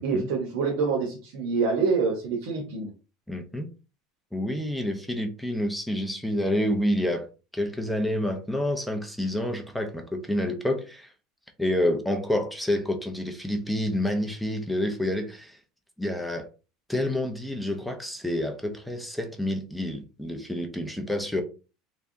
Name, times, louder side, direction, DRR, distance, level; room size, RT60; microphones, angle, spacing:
voice 1, 0.0-2.9, right 4 dB, 70° right, 1.0 m, -26 dB
voice 2, 3.3-3.7 4.3-7.3 7.5-11.1 11.6-15.6 16.0-16.5 16.9-21.4, left 1 dB, ahead, 0.6 m, -28 dB
3.4 x 3.3 x 2.7 m
supercardioid pair, 140°, 0 cm